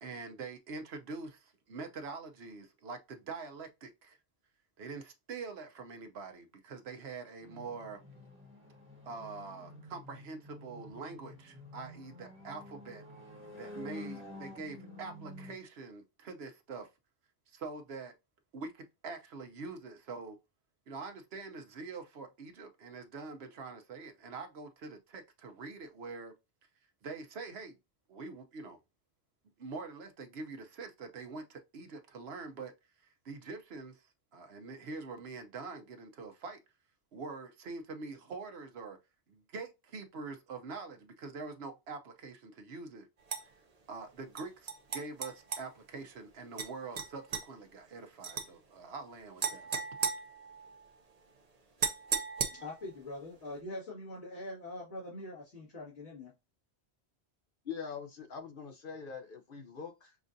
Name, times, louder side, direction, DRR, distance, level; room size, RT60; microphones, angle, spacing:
voice 1, 0.0-4.2 4.8-8.0 9.0-13.0 13.6-16.9 17.5-18.1 18.5-20.4 20.9-26.3 27.0-27.8 28.1-28.8 29.6-32.7 33.0-36.6 37.1-39.0 39.3-43.1 43.9-49.9, right 4 dB, 65° right, 1.1 m, -44 dB
sound 1, 7.4-15.6, left 1 dB, 10° right, 1.3 m, -49 dB
sound 2, 43.3-43.4 44.4-45.6 46.6-46.7 47.0-47.4 48.2-48.5 49.4-50.9 51.8-52.9, right 5 dB, 40° right, 0.7 m, -35 dB
voice 2, 52.5-56.3, left 1 dB, 80° left, 2.1 m, -43 dB
voice 3, 57.6-60.2, left 6 dB, 55° left, 0.8 m, -43 dB
6.0 x 2.5 x 2.6 m
omnidirectional pair, 1.1 m